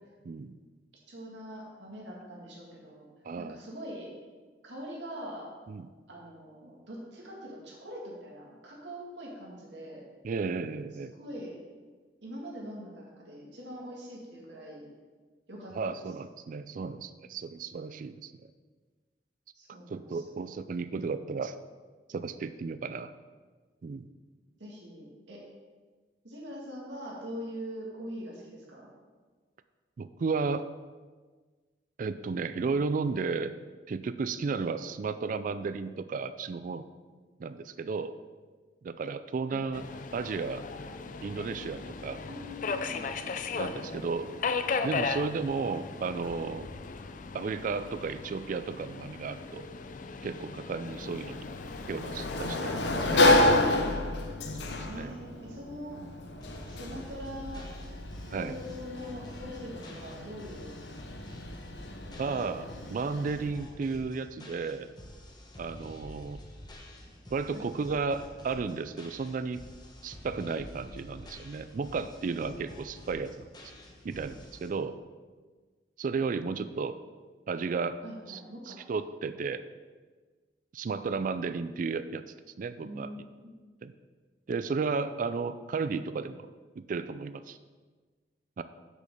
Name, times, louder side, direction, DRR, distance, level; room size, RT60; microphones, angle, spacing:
voice 1, 0.2-0.6 3.2-3.6 5.7-5.9 10.2-11.1 15.7-18.3 19.9-21.6 22.1-23.1 23.8-24.1 30.0-30.7 32.0-33.5 33.9-36.8 37.4-38.1 38.8-39.8 40.1-40.6 41.2-42.2 43.6-44.3 44.8-46.7 47.3-49.7 50.2-51.4 51.9-52.8 53.1-53.3 54.9-55.1 56.0-56.1 58.3-58.6 62.2-64.9 65.6-66.4 67.3-69.6 70.0-73.5 74.0-75.0 76.0-77.0 77.5-78.0 78.3-78.4 78.7-79.6 80.7-82.2 82.6-83.1 83.8-83.9 84.5-86.5 86.8-87.6 88.6-88.7, right 4 dB, 50° right, 12 dB, 0.3 m, -33 dB
voice 2, 1.1-3.1 3.4-4.1 4.6-5.5 6.1-10.0 11.1-11.6 12.2-14.9 15.5-16.0 19.5-20.5 24.6-25.4 26.2-28.9 39.5-39.9 42.3-43.1 54.8-56.0 56.7-57.6 58.3-60.7 62.1-63.2 67.5-67.7 78.0-78.8 82.8-83.5, equal, 90° right, -3 dB, 2.1 m, -43 dB
Subway metro underground, 39.7-52.8, left 4 dB, 45° left, 0.4 m, -37 dB
Sliding door, 50.9-63.5, left 2 dB, 75° left, 0.8 m, -30 dB
sound 1, 56.4-74.7, left 1 dB, 25° left, 1.1 m, -48 dB
6.5 x 5.3 x 6.6 m, 1.4 s
head